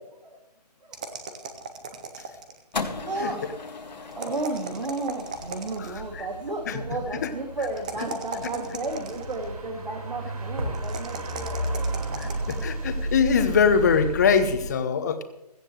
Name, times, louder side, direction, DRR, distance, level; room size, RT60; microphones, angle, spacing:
voice 1, 0.8-1.2 3.0-3.4 4.2-11.9, right 2 dB, 85° right, 2 dB, 2.8 m, -33 dB
sound 1, 0.9-2.7 4.1-6.0 7.6-9.4 10.7-12.7, right 4 dB, 10° right, 0.5 m, -38 dB
sound 2, 2.7-9.1, left 4 dB, 90° left, 2.1 m, -39 dB
sound 3, 5.3-14.7, right 1 dB, 60° right, 5.0 m, -33 dB
voice 2, 12.2-15.2, left 6 dB, 25° left, 9 dB, 1.1 m, -22 dB
17.0 x 14.0 x 3.3 m, 0.89 s
hypercardioid pair, 170°, 21 cm